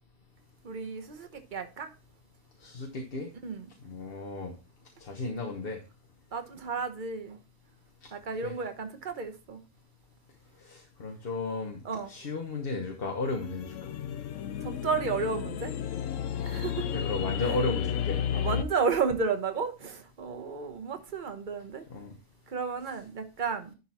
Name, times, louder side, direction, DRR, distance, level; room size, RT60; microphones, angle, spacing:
voice 1, 0.6-1.9 3.4-3.7 6.3-7.4 8.1-9.6 11.8-12.1 14.6-15.7 16.3-17.0 17.4-17.6 18.3-21.8 22.5-23.7, right 5 dB, 40° right, 1.1 m, -32 dB
voice 2, 2.6-3.3 3.8-4.5 5.0-5.8 8.4-8.5 10.6-11.8 12.1-13.7 16.9-18.2 21.9-22.1, left 3 dB, 45° left, 1.2 m, -34 dB
sound 1, 13.3-18.6, left 9 dB, 75° left, 0.9 m, -32 dB
11.0 x 4.2 x 4.3 m
omnidirectional pair, 1.3 m